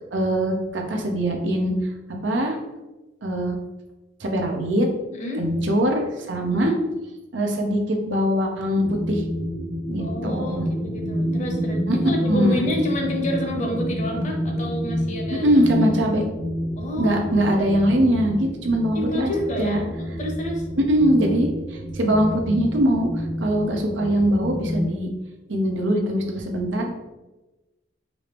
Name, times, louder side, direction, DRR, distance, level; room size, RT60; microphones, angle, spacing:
voice 1, 0.1-1.7 2.2-2.6 3.2-3.6 4.2-4.9 5.4-6.7 7.3-9.2 9.9-10.6 11.9-12.6 15.3-16.2 17.0-19.3 19.6-19.8 20.8-23.1 23.4-25.1 25.5-26.9, equal, 85° right, 1 dB, 0.8 m, -22 dB
voice 2, 5.1-5.4 6.5-6.8 10.0-15.4 16.8-17.3 18.9-20.7, left 1 dB, 40° left, 1 dB, 0.8 m, -29 dB
sound 1, 8.8-24.9, equal, 60° right, 1.1 m, -29 dB
4.9 x 2.5 x 3.4 m, 1.1 s
head